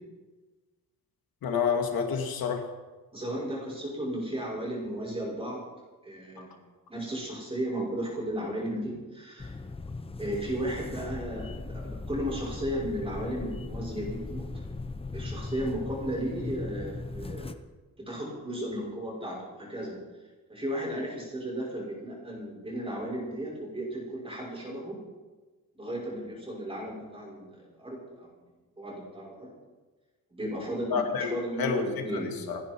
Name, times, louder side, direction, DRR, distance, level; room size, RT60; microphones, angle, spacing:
voice 1, 1.4-2.7 6.4-6.5 30.9-31.3 31.6-31.8 32.1-32.6, left 6 dB, 90° left, 4 dB, 2.2 m, -29 dB
voice 2, 3.1-5.6 6.0-6.6 6.9-9.6 10.2-14.6 15.1-17.5 18.1-19.9 20.5-25.0 25.7-28.3 28.8-29.5 30.3-32.3, right 1 dB, 15° right, -3 dB, 5.9 m, -35 dB
sound 1, 9.4-17.5, left 3 dB, 15° left, 0.7 m, -38 dB
29.5 x 10.5 x 4.6 m, 1.3 s
wide cardioid pair, 175°, 35 cm